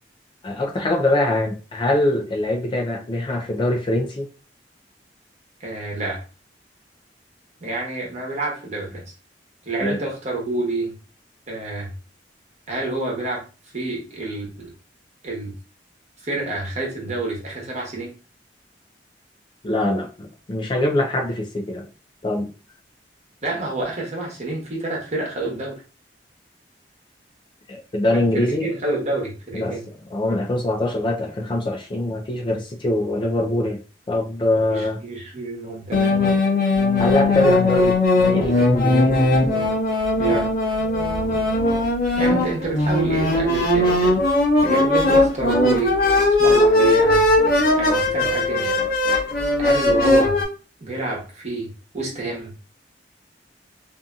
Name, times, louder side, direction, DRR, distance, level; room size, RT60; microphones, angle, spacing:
voice 1, 0.4-4.3 9.8-10.0 19.6-21.8 22.2-22.5 27.7-28.7 29.5-29.8 30.1-33.8 34.1-35.0 37.0-38.0 38.3-39.3, left 1 dB, 30° left, 2 dB, 0.4 m, -23 dB
voice 2, 5.6-6.2 7.6-9.0 9.6-10.9 11.5-11.9 12.7-13.4 13.7-14.7 15.2-15.5 16.2-18.2 23.4-25.8 28.1-29.8 34.7-36.2 40.2-40.5 42.2-44.2 44.6-46.0 46.4-47.2 47.8-48.9 49.6-50.4 50.8-52.5, right 2 dB, 40° right, -2 dB, 1.0 m, -28 dB
sound 1, 35.9-50.4, left 2 dB, 60° left, 0.8 m, -19 dB
2.7 x 2.6 x 2.3 m, 0.34 s
head